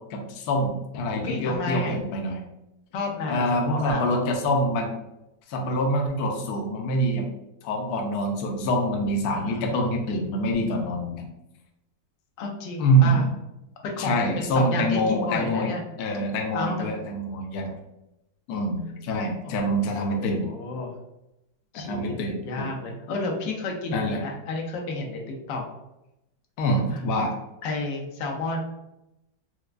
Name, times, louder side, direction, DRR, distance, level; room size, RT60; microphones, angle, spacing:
voice 1, 0.1-2.4 3.3-4.9 5.5-7.3 7.6-11.3 12.8-13.3 14.0-15.7 16.0-17.7 18.5-20.5 21.7-22.4 23.9-24.3 26.6-27.3, equal, 70° left, 2 dB, 1.0 m, -25 dB
voice 2, 1.2-2.0 2.9-4.1 9.3-9.9 12.4-13.3 13.8-15.8 16.5-16.9 19.4-19.5 19.8-20.9 21.7-22.1 22.4-25.2 25.5-25.6 26.9-27.0 27.6-28.6, left 3 dB, 90° left, 1 dB, 1.4 m, -31 dB
4.4 x 2.2 x 2.4 m, 0.91 s
omnidirectional pair, 1.9 m